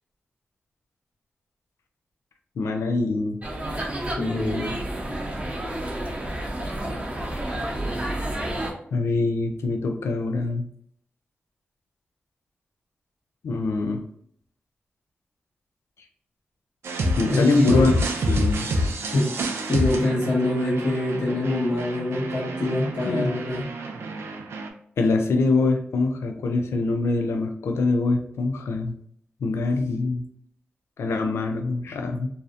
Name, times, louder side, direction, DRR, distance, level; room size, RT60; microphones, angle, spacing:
voice 1, 2.6-3.4 8.9-10.6 13.4-14.0 17.2-18.7 23.1-23.3 25.0-28.9 29.4-30.2 31.0-32.3, left 3 dB, 85° left, 5 dB, 0.3 m, -24 dB
sound 1, 3.4-8.7, right 1 dB, 30° right, 0.7 m, -30 dB
voice 2, 4.2-4.7 17.2-17.9 19.1-19.3 19.7-23.7, left 2 dB, 70° left, -10 dB, 1.1 m, -24 dB
sound 2, 16.8-24.7, right 1 dB, 80° right, 0.4 m, -28 dB
2.6 x 2.0 x 2.4 m, 0.65 s
cardioid pair, 45°, 4 cm